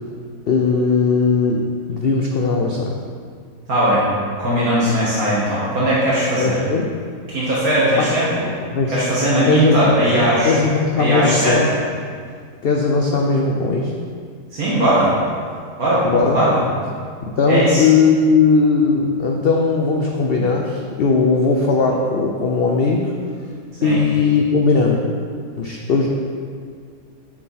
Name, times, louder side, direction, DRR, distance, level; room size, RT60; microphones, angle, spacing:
voice 1, 0.5-3.0 6.4-6.9 8.0-8.2 8.7-9.0 9.5-9.8 10.4-11.7 12.6-13.9 16.0-16.4 17.2-23.1 23.8-25.0 25.6-26.1, left 4 dB, 60° left, 1 dB, 0.6 m, -18 dB
voice 2, 3.7-4.0 4.4-6.6 7.3-8.4 8.9-10.6 11.0-11.5 14.5-15.1 15.8-16.0 16.3-16.6 17.5-17.9 23.8-24.0, right 1 dB, 60° right, -8 dB, 2.0 m, -18 dB
8.6 x 6.0 x 4.2 m, 2.1 s
omnidirectional pair, 1.7 m